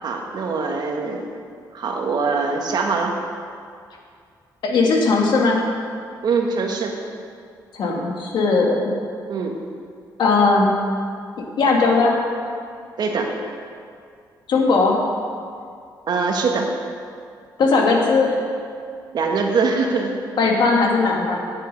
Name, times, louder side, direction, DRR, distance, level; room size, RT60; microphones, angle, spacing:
voice 1, 0.0-1.3 1.7-3.1 6.2-7.0 9.3-9.6 13.0-13.3 16.1-16.7 19.1-20.1, right 4 dB, 60° right, 2 dB, 1.4 m, -22 dB
voice 2, 4.6-5.6 7.7-8.9 10.2-10.7 11.6-12.1 14.5-14.9 17.6-18.4 20.4-21.4, left 3 dB, 70° left, 0 dB, 1.8 m, -18 dB
8.8 x 8.4 x 5.2 m, 2.2 s
cardioid pair, 85°, 8 cm